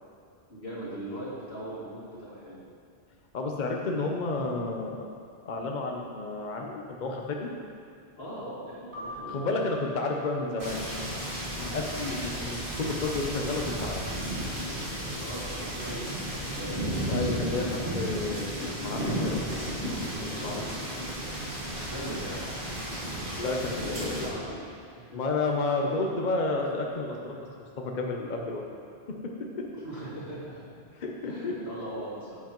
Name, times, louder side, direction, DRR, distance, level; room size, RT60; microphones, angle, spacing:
voice 1, 0.5-2.6 8.2-9.5 15.2-16.8 21.8-22.5 23.8-25.2 29.7-30.7 31.2-32.4, right 1 dB, 80° left, -9 dB, 2.8 m, -39 dB
voice 2, 3.3-5.1 5.4-7.5 9.3-10.8 11.6-14.0 17.1-19.4 20.4-20.6 23.4-24.2 25.1-27.4 27.8-28.6 31.0-31.5, left 3 dB, 50° left, 0 dB, 0.8 m, -31 dB
Keyboard (musical), 8.9-11.5, left 2 dB, 50° right, 1.8 m, -45 dB
sound 1, 10.6-24.3, equal, 75° right, 2.0 m, -33 dB
10.5 x 8.0 x 3.0 m, 2.3 s
omnidirectional pair, 1.1 m